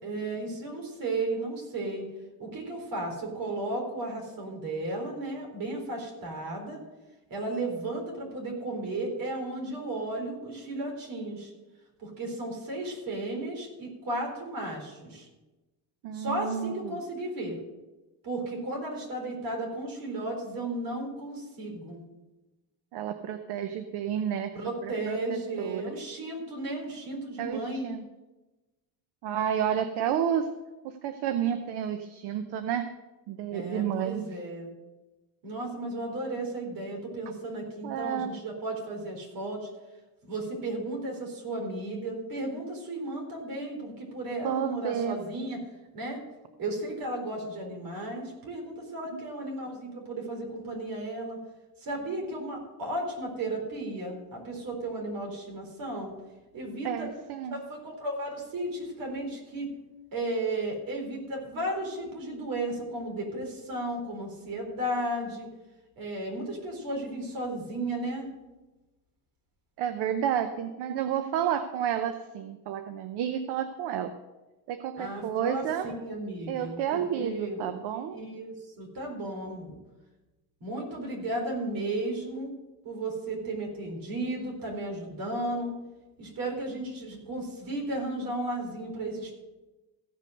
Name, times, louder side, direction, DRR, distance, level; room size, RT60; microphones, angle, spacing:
voice 1, 0.0-2.1 2.4-6.8 7.3-11.5 12.0-15.3 16.1-17.6 18.2-22.0 24.5-27.9 33.5-34.7 35.4-39.7 40.2-45.6 45.9-46.2 46.6-51.4 51.8-56.1 56.5-57.1 57.5-59.7 60.1-65.5 66.0-68.3 75.0-77.6 78.1-79.8 80.6-82.5 82.8-85.7 86.2-89.3, right 2 dB, 55° right, 1 dB, 4.1 m, -34 dB
voice 2, 16.0-17.0 22.9-24.5 24.8-25.8 27.4-28.1 29.2-30.5 30.8-32.9 33.3-34.3 37.8-38.3 44.4-45.2 49.1-49.2 56.8-57.6 69.8-74.1 74.7-75.9 76.5-78.2, right 9 dB, 70° right, 9 dB, 0.8 m, -31 dB
15.5 x 5.4 x 6.6 m, 1.1 s
cardioid pair, 125°, 41 cm